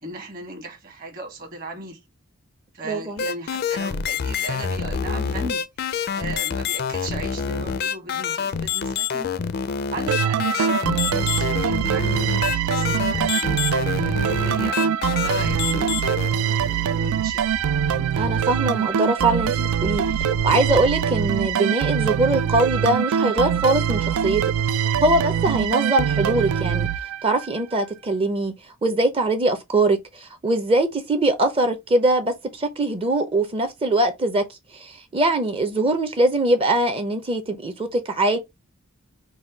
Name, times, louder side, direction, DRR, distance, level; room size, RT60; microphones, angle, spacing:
voice 1, 0.0-2.0 2.7-5.6 6.1-9.3 9.9-13.4 14.0-16.6 16.9-17.7, right 2 dB, 40° right, 1.3 m, -36 dB
voice 2, 2.8-3.2 18.2-20.0 20.4-26.9 27.2-28.5 28.8-34.4 34.7-38.4, right 2 dB, 25° right, 0.5 m, -22 dB
sound 1, 3.2-18.5 19.2-21.2, left 6 dB, 45° left, 0.4 m, -28 dB
sound 2, 10.1-27.6, right 8 dB, 85° right, 0.3 m, -23 dB
4.1 x 2.2 x 4.6 m
head